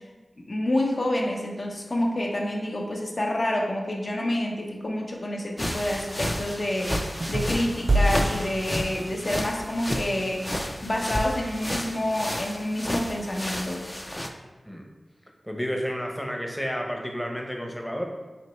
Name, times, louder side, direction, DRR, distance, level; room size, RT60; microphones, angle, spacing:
voice 1, 0.5-10.5 10.8-13.9, left 1 dB, 50° left, 0 dB, 0.7 m, -28 dB
sound 1, 5.6-14.3, equal, 20° left, 0.4 m, -32 dB
sound 2, 7.2-9.4, right 1 dB, 50° right, 0.4 m, -27 dB
voice 2, 15.4-18.0, equal, 5° left, 1 dB, 0.7 m, -31 dB
4.3 x 3.0 x 3.0 m, 1.2 s
cardioid pair, 50°, 0 cm